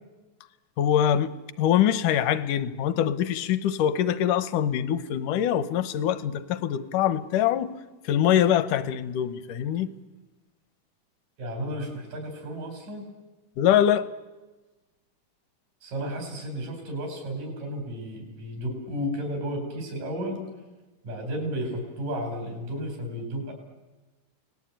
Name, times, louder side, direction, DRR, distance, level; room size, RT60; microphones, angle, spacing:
voice 1, 0.8-7.7 8.0-9.9 13.6-14.1, left 10 dB, 80° left, 14 dB, 2.4 m, -24 dB
voice 2, 11.4-13.0 15.8-20.4 21.0-23.5, equal, 85° right, 2 dB, 6.6 m, -33 dB
29.0 x 19.0 x 8.9 m, 1.2 s
omnidirectional pair, 3.7 m